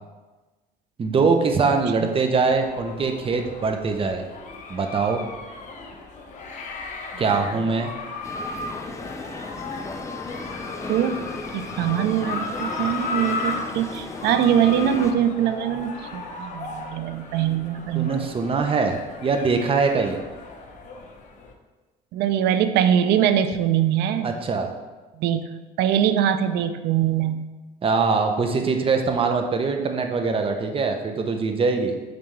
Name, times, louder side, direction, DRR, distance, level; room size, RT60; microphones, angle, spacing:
voice 1, 1.0-4.2 4.7-5.2 7.2-7.9 17.9-20.2 24.2-24.7 27.8-32.0, right 4 dB, 35° right, 5 dB, 0.7 m, -22 dB
sound 1, 2.5-21.5, left 3 dB, 45° left, 1.0 m, -35 dB
sound 2, 8.2-15.1, left 3 dB, 15° left, 0.6 m, -36 dB
voice 2, 10.9-11.2 11.5-18.1 22.1-24.4 25.2-25.5 25.8-27.5, right 9 dB, 80° right, 10 dB, 0.5 m, -22 dB
8.9 x 3.4 x 3.2 m, 1.2 s
cardioid pair, 110°, 17 cm